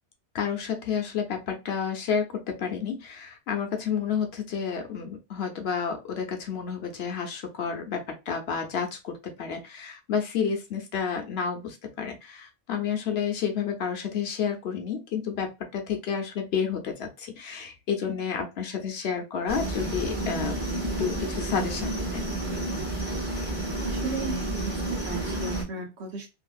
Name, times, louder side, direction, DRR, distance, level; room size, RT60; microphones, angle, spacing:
voice 1, 0.3-20.6 21.0-22.3, left 7 dB, 65° left, 4 dB, 0.9 m, -30 dB
sound 1, 19.5-25.6, right 1 dB, 10° right, 1.3 m, -30 dB
voice 2, 23.8-26.3, right 4 dB, 70° right, 1 dB, 1.2 m, -35 dB
2.8 x 2.6 x 2.3 m, 0.26 s
omnidirectional pair, 1.2 m